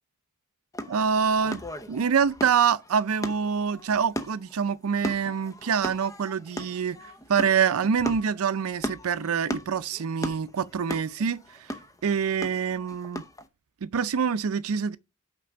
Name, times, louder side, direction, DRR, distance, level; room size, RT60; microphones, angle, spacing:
sound 1, 0.7-13.5, equal, 15° left, 0.7 m, -37 dB
voice 1, 0.9-1.6 1.9-11.4 12.0-13.2 13.8-15.0, right 6 dB, 75° right, 0.5 m, -26 dB
6.0 x 5.3 x 5.9 m
head